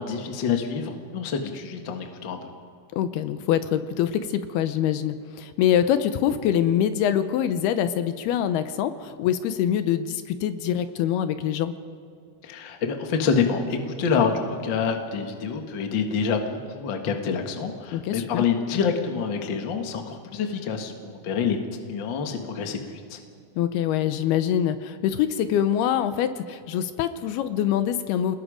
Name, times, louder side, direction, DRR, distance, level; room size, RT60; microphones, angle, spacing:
voice 1, 0.0-2.5 12.4-21.6 21.9-23.2, left 6 dB, 50° left, 4 dB, 1.4 m, -27 dB
voice 2, 2.9-11.7 17.9-18.4 23.6-28.4, left 10 dB, 80° left, 11 dB, 2.7 m, -24 dB
28.0 x 20.0 x 5.1 m, 2.3 s
omnidirectional pair, 4.6 m